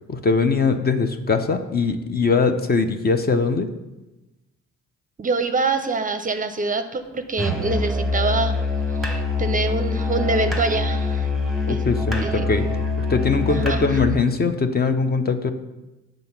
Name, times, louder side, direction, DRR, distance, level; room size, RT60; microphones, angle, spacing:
voice 1, 0.1-3.7 11.7-12.7 13.1-15.5, left 4 dB, 35° left, 8 dB, 0.5 m, -21 dB
voice 2, 5.2-8.6 9.0-11.3 11.7-11.8 12.2-12.5 13.5-13.8, right 3 dB, 25° right, 9 dB, 0.5 m, -25 dB
Musical instrument, 7.4-14.1, left 3 dB, ahead, 0.9 m, -24 dB
7.6 x 3.9 x 5.8 m, 1.0 s
cardioid pair, 90°, 30 cm